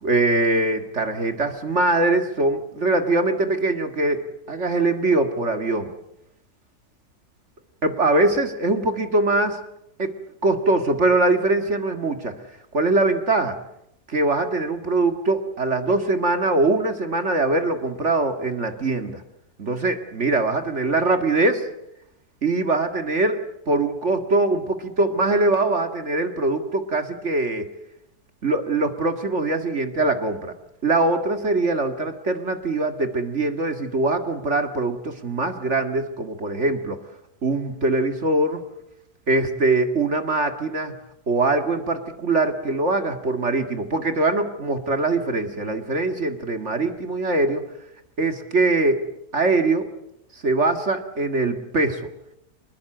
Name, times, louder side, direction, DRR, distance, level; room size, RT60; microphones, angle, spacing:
voice 1, 0.0-5.9 7.8-9.6 10.0-10.1 10.4-12.3 12.7-13.6 14.1-19.2 19.6-21.7 22.4-27.7 28.4-30.5 30.8-37.0 37.4-38.6 39.3-40.9 41.3-47.6 48.2-49.1 49.3-49.9 50.3-52.1, right 2 dB, 45° right, 7 dB, 2.3 m, -22 dB
26.5 x 21.0 x 7.8 m, 0.78 s
omnidirectional pair, 1.7 m